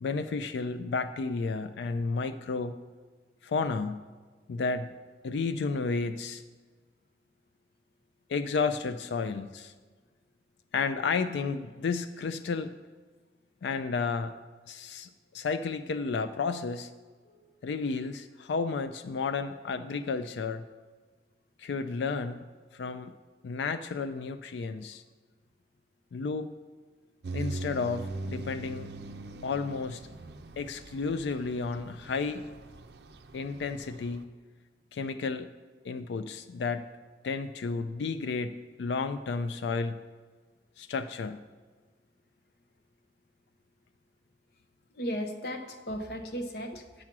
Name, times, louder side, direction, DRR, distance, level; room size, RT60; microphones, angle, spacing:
voice 1, 0.0-2.8 3.4-4.0 4.5-4.9 5.2-6.4 8.3-9.7 10.7-12.7 13.6-14.3 14.7-16.9 17.6-20.6 21.6-22.5 22.7-23.1 23.4-25.0 26.1-26.5 27.3-28.9 29.4-30.0 30.6-32.4 33.3-34.3 34.9-35.5 35.8-36.8 37.2-40.0 40.8-41.4, left 4 dB, 75° left, 10 dB, 0.4 m, -32 dB
sound 1, 27.2-34.2, right 2 dB, 65° right, 0.5 m, -41 dB
voice 2, 45.0-47.0, equal, 60° left, 5 dB, 0.8 m, -36 dB
8.8 x 6.0 x 5.9 m, 1.4 s
head